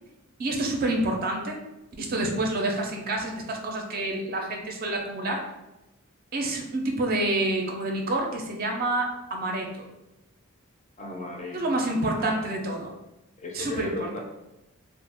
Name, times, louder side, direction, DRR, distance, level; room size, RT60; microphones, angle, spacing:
voice 1, 0.4-1.6 2.0-5.5 6.3-9.9 11.5-12.9 13.5-14.2, right 2 dB, 40° right, 1 dB, 0.4 m, -28 dB
voice 2, 11.0-11.8 12.1-12.4 13.4-14.2, left 2 dB, 30° left, 0 dB, 0.4 m, -36 dB
2.2 x 2.0 x 3.3 m, 0.97 s
head